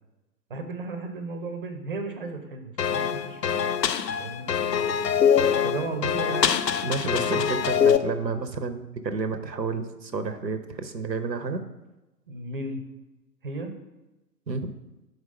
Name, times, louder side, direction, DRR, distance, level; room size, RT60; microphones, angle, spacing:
voice 1, 0.5-3.7 4.1-4.5 5.6-6.7 7.0-7.6 12.3-12.8 13.4-13.8, right 3 dB, 30° right, 6 dB, 0.7 m, -35 dB
sound 1, 2.8-8.0, left 8 dB, 75° left, 0.6 m, -23 dB
voice 2, 6.8-11.6 14.5-14.7, right 4 dB, 85° right, 9 dB, 0.8 m, -30 dB
5.1 x 4.6 x 5.5 m, 1.0 s
figure-of-eight pair, 125°, 50 cm